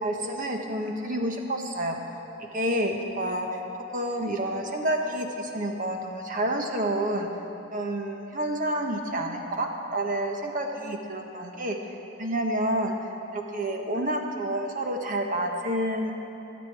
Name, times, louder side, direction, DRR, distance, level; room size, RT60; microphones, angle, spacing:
voice 1, 0.0-2.0 2.5-3.6 3.9-7.3 7.7-11.8 12.2-12.9 13.3-16.1, right 1 dB, 40° right, 2 dB, 1.3 m, -29 dB
25.0 x 8.4 x 4.8 m, 2.9 s
head